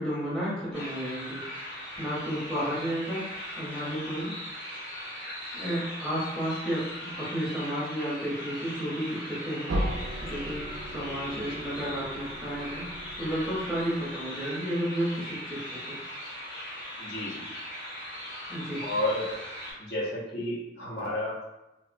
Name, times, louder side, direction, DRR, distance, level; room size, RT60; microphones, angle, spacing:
voice 1, 0.0-1.4 2.0-3.2 3.6-4.3 5.5-9.9 10.2-10.7 10.9-12.9 13.2-16.0 18.5-18.8, equal, 5° left, -9 dB, 0.7 m, -32 dB
sound 1, 0.7-19.7, equal, 80° left, 1.0 m, -39 dB
sound 2, 9.7-14.5, right 1 dB, 65° right, 0.4 m, -36 dB
voice 2, 17.0-17.5 18.8-19.4 19.8-21.5, left 1 dB, 60° left, -4 dB, 0.6 m, -32 dB
2.8 x 2.0 x 2.5 m, 0.95 s
head